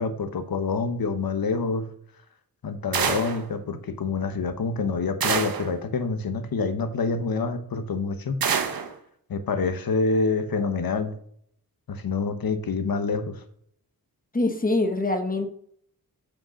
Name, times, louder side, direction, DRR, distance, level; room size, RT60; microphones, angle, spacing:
voice 1, 0.0-1.9 2.6-8.4 9.3-11.1 11.9-13.4, left 4 dB, 70° left, 9 dB, 1.1 m, -27 dB
sound 1, 2.9-3.5 5.2-5.7 8.4-8.9, right 7 dB, 70° right, 1.0 m, -26 dB
voice 2, 14.3-15.5, left 2 dB, 25° left, 6 dB, 1.0 m, -24 dB
8.6 x 5.2 x 6.4 m, 0.66 s
wide cardioid pair, 135°, 36 cm